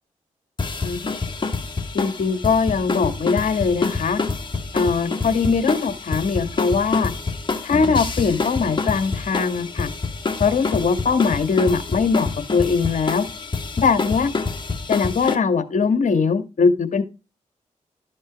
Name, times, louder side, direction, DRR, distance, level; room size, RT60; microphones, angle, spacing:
sound 1, 0.6-15.4, left 4 dB, 35° left, 2.2 m, -27 dB
voice 1, 1.9-4.2 4.7-7.1 7.6-9.9 10.4-13.3 13.8-14.3 14.9-17.0, left 5 dB, 60° left, 10 dB, 1.6 m, -21 dB
12.5 x 5.4 x 5.1 m, 0.29 s
supercardioid pair, 45°, 14 cm